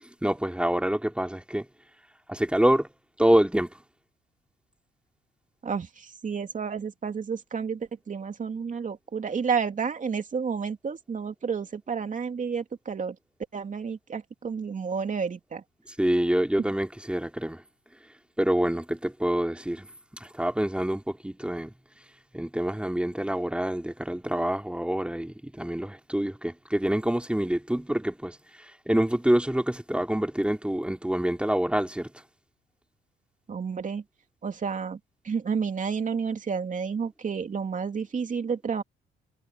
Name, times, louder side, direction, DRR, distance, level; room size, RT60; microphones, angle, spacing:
voice 1, 0.2-1.6 2.3-2.9 3.2-3.7 16.0-17.6 18.4-19.9 20.2-21.7 22.3-28.4 28.9-32.1, right 1 dB, 5° right, 3.1 m, -26 dB
voice 2, 5.6-13.1 13.5-15.6 33.5-34.0 34.4-35.0 35.2-38.8, right 6 dB, 40° right, 2.9 m, -30 dB
cardioid pair, 90°, 20 cm